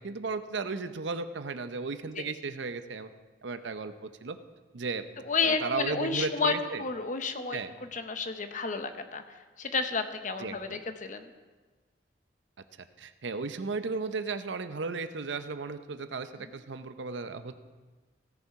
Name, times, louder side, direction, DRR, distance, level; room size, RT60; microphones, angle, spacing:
voice 1, 0.0-3.1 3.4-4.4 4.7-5.1 5.4-6.8 7.5-7.7 10.4-10.8 13.0-17.5, right 4 dB, 80° right, 10 dB, 0.6 m, -35 dB
voice 2, 5.2-11.3 16.4-16.6, left 4 dB, 45° left, 8 dB, 0.8 m, -31 dB
16.5 x 6.8 x 4.7 m, 1.3 s
head